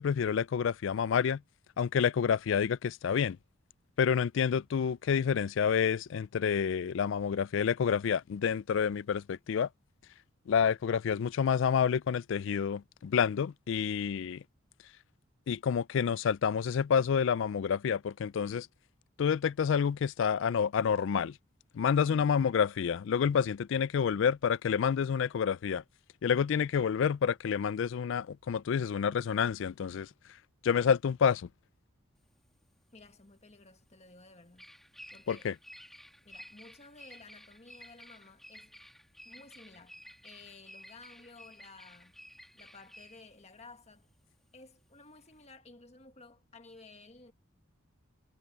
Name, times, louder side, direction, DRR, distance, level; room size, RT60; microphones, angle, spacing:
voice 1, 0.0-1.4 1.8-3.4 4.0-9.7 10.5-14.4 15.5-18.7 19.2-21.3 21.7-25.8 26.2-30.1 30.6-31.5 35.3-35.5, left 7 dB, 60° left, 0.3 m, -28 dB
Bird vocalization bird call bird song, 32.2-45.4, equal, ahead, 1.6 m, -54 dB
voice 2, 32.9-34.7 35.1-35.5 36.2-38.8 39.2-42.1 42.5-44.1 44.5-47.3, left 3 dB, 30° left, 1.6 m, -54 dB
head